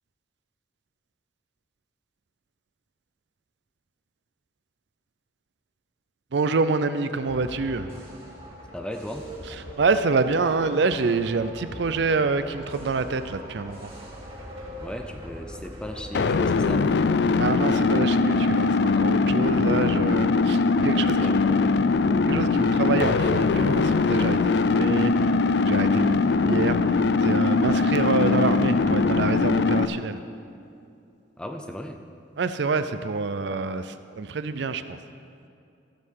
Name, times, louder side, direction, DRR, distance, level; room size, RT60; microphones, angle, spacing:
voice 1, 6.3-7.9 9.5-13.9 17.4-21.4 22.3-25.3 25.6-26.2 26.5-30.2 32.4-35.0, right 4 dB, 65° right, 11 dB, 0.5 m, -26 dB
sound 1, 7.2-16.5, equal, 30° right, 2.2 m, -42 dB
voice 2, 8.7-9.3 14.8-16.9 20.9-21.8 31.4-32.0, left 1 dB, 5° left, 5 dB, 0.6 m, -36 dB
sound 2, 16.1-29.9, left 4 dB, 60° left, 0.4 m, -21 dB
15.5 x 5.6 x 6.5 m, 2.5 s
head